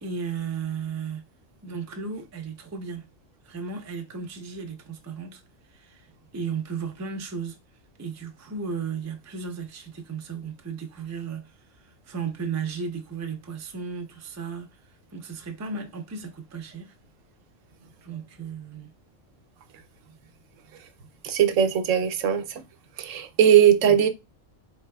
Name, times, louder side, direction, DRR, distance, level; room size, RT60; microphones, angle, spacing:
voice 1, 0.0-1.2 1.6-3.1 3.4-5.4 5.7-7.6 8.0-16.9 18.0-18.9, right 5 dB, 25° right, 0.3 m, -35 dB
voice 2, 21.2-22.6 23.0-24.1, right 9 dB, 80° right, 1.0 m, -19 dB
4.0 x 3.3 x 2.2 m
omnidirectional pair, 1.3 m